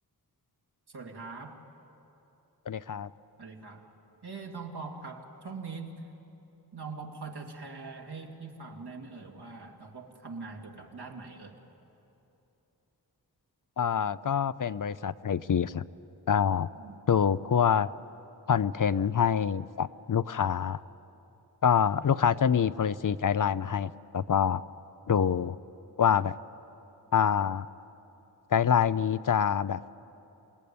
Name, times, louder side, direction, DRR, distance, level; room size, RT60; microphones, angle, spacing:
voice 1, 0.9-1.6 3.4-3.9 4.2-6.1 6.7-11.6 16.7-17.3, right 4 dB, 75° right, 1 dB, 2.6 m, -42 dB
voice 2, 2.7-3.1 13.8-15.8 16.3-16.7 17.1-17.9 18.5-20.8 21.6-24.6 25.1-25.6 26.0-26.3 27.1-27.7 28.5-29.8, left 8 dB, 55° left, 15 dB, 0.6 m, -26 dB
27.5 x 19.0 x 8.7 m, 3.0 s
cardioid pair, 50°, 40 cm